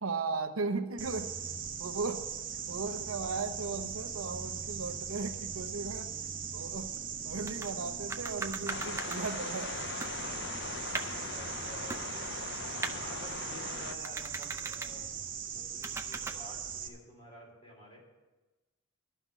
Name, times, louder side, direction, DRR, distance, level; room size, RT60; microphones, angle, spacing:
voice 1, 0.0-1.3 1.8-2.2 2.7-6.1 6.5-6.9 7.2-9.9, right 4 dB, 80° right, 7 dB, 0.8 m, -36 dB
sound 1, 1.0-16.9, right 7 dB, 40° right, 0.8 m, -40 dB
sound 2, 7.5-7.7 8.1-9.2 9.7-9.8 10.0-11.3 11.9-12.4 12.8-13.0 14.0-14.9 15.8-16.3, right 3 dB, 15° right, 0.5 m, -39 dB
sound 3, 8.7-13.9, left 6 dB, 55° left, 0.4 m, -41 dB
voice 2, 10.8-12.1 12.8-18.0, equal, 25° left, -2 dB, 3.2 m, -51 dB
12.0 x 5.8 x 8.2 m, 1.2 s
head